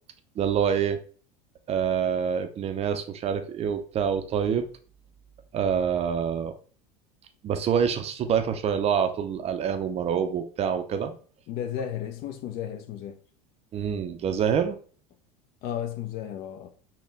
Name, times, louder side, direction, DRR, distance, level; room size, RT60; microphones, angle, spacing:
voice 1, 0.4-1.0 1.7-4.7 5.5-6.5 7.4-11.1 13.7-14.8, right 7 dB, 35° right, 0.5 m, -26 dB
voice 2, 11.5-13.2 15.6-16.7, left 10 dB, 55° left, 0.6 m, -33 dB
4.0 x 2.2 x 3.9 m
supercardioid pair, 105°, 19 cm